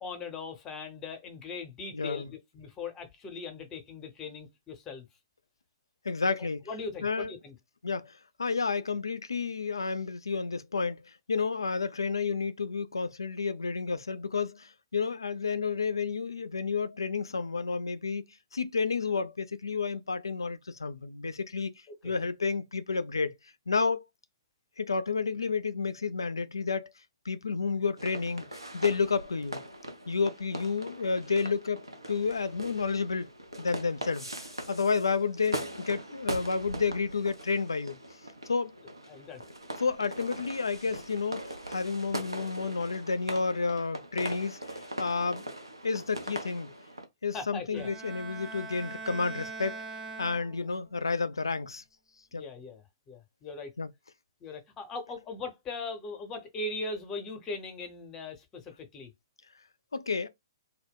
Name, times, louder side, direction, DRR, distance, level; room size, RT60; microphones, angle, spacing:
voice 1, 0.0-5.1 6.7-7.6 22.0-22.1 39.1-39.4 47.3-47.9 50.6-50.7 52.3-53.7 54.4-59.1, left 3 dB, 20° left, 0.7 m, -40 dB
voice 2, 1.9-2.3 6.0-6.6 7.0-7.3 7.8-8.1 8.4-11.0 11.3-18.2 18.5-21.7 22.0-23.3 23.7-24.0 24.8-26.9 27.3-28.4 28.7-29.6 30.1-33.3 33.6-34.3 34.7-38.0 38.5-38.7 39.8-44.6 45.0-45.4 45.8-46.7 47.2-49.8 50.2-51.8 52.3-52.4 53.8-53.9 59.9-60.3, left 4 dB, 70° left, 0.3 m, -30 dB
sound 1, 28.0-47.1, right 1 dB, 85° right, 0.6 m, -41 dB
Bowed string instrument, 47.7-50.9, right 4 dB, 20° right, 0.4 m, -42 dB
2.2 x 2.1 x 3.5 m
figure-of-eight pair, 120°, 2 cm